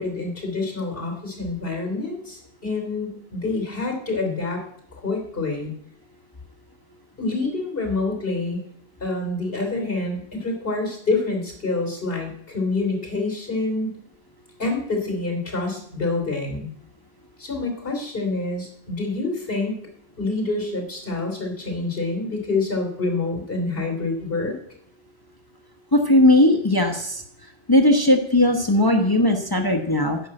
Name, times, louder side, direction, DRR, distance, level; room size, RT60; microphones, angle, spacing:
voice 1, 0.0-4.6 4.9-5.7 7.2-8.6 9.0-14.0 14.6-16.7 17.4-19.8 20.2-24.5, left 3 dB, 65° left, 3 dB, 3.4 m, -27 dB
voice 2, 25.9-27.2 27.7-30.2, left 1 dB, 25° left, 4 dB, 1.0 m, -18 dB
11.0 x 5.5 x 8.8 m, 0.69 s
omnidirectional pair, 1.0 m